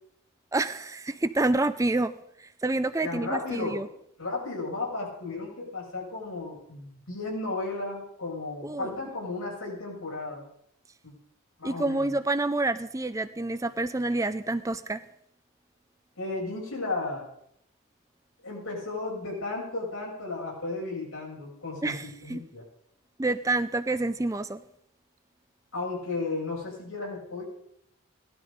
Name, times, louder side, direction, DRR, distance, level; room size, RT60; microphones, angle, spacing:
voice 1, 0.5-2.1 2.4-3.9 8.6-8.9 11.6-15.0 21.8-22.4 23.2-24.6, right 2 dB, 15° right, 0.4 m, -28 dB
voice 2, 3.0-3.8 4.2-10.4 11.0-11.1 11.6-12.1 16.2-17.3 18.4-22.7 25.7-27.4, left 3 dB, 70° left, 6.7 m, -34 dB
17.0 x 12.0 x 5.3 m
head